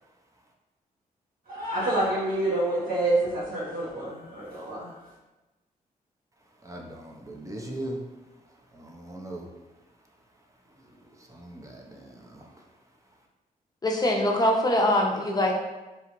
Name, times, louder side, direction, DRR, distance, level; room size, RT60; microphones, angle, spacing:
voice 1, 1.5-5.0, right 2 dB, 65° right, -7 dB, 1.1 m, -27 dB
voice 2, 6.6-8.0 8.7-9.5 11.2-12.5, right 1 dB, 20° right, 0 dB, 0.6 m, -39 dB
voice 3, 13.8-15.5, left 1 dB, 25° left, 0 dB, 0.6 m, -23 dB
2.9 x 2.3 x 3.0 m, 1.1 s
cardioid pair, 60°, 16 cm